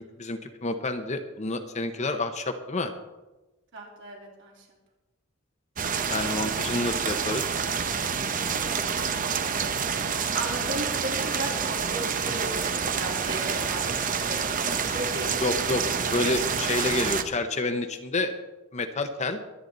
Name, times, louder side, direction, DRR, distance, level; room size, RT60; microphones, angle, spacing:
voice 1, 0.2-2.9 6.1-7.5 15.4-18.3 18.7-19.4, left 2 dB, 35° left, 7 dB, 0.9 m, -29 dB
voice 2, 3.7-4.7 10.3-15.3, right 1 dB, 60° right, -2 dB, 3.6 m, -36 dB
sound 1, 5.8-17.2, right 6 dB, 40° right, 0.8 m, -28 dB
22.5 x 9.1 x 4.0 m, 1.1 s
head